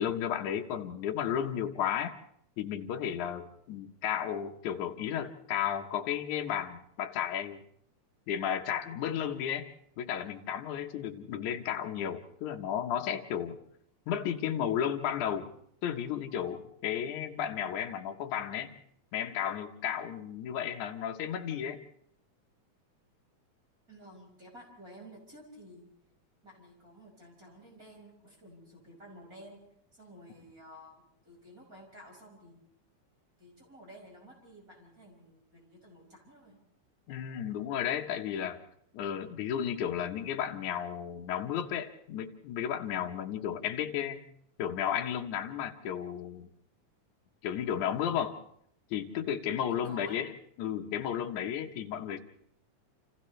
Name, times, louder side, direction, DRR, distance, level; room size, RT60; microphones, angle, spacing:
voice 1, 0.0-2.1 2.6-7.6 8.3-9.7 10.0-13.6 14.1-15.5 15.8-18.7 19.1-21.8 37.1-38.6 38.9-44.2 44.6-46.5 47.4-48.4 48.9-50.3 50.6-52.2, left 9 dB, 75° left, 3 dB, 2.6 m, -33 dB
voice 2, 23.9-25.8 26.4-29.6 29.9-32.6 33.4-36.6 49.7-50.2, equal, 25° right, 0 dB, 6.1 m, -52 dB
29.5 x 27.5 x 3.3 m, 0.70 s
omnidirectional pair, 3.5 m